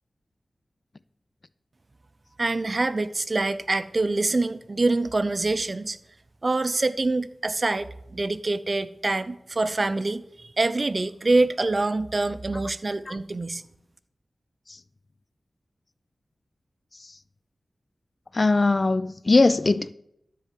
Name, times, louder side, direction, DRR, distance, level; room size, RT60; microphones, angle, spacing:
voice 1, 2.4-6.0 6.4-13.6, right 2 dB, 45° right, 0.6 m, -25 dB
voice 2, 18.3-20.0, left 3 dB, 45° left, 0.4 m, -20 dB
13.0 x 4.7 x 7.5 m
cardioid pair, 45°, 0 cm